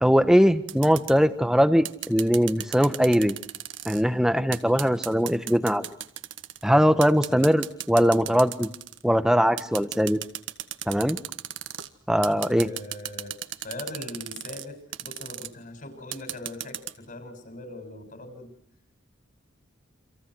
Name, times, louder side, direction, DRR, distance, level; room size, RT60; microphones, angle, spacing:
voice 1, 0.0-3.4 3.8-5.9 6.6-8.7 9.0-10.2 10.9-11.2 12.1-12.7, equal, 5° right, 10 dB, 1.3 m, -21 dB
sound 1, 0.7-1.2 1.9-4.0 4.5-6.6 7.0-9.0 9.6-11.9 12.2-14.7 14.9-15.5 16.1-16.9, right 12 dB, 70° right, 1.6 m, -35 dB
voice 2, 12.3-13.4 13.6-18.6, left 1 dB, 45° left, 6 dB, 7.0 m, -40 dB
29.5 x 26.5 x 6.4 m, 0.69 s
head